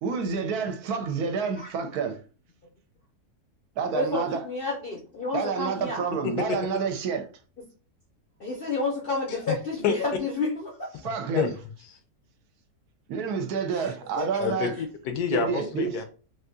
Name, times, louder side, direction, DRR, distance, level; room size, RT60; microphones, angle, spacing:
voice 1, 0.0-2.2 3.8-4.4 5.3-7.2 11.0-11.5 13.1-14.7 15.3-16.0, right 5 dB, 75° right, 1.1 m, -29 dB
voice 2, 3.9-6.0 8.4-10.9 14.2-14.3, left 3 dB, 55° left, 0.6 m, -30 dB
voice 3, 6.2-6.6 9.5-9.6 9.8-9.9 11.4-11.5 14.4-16.0, left 7 dB, 80° left, 1.1 m, -27 dB
3.6 x 2.6 x 2.6 m
omnidirectional pair, 1.7 m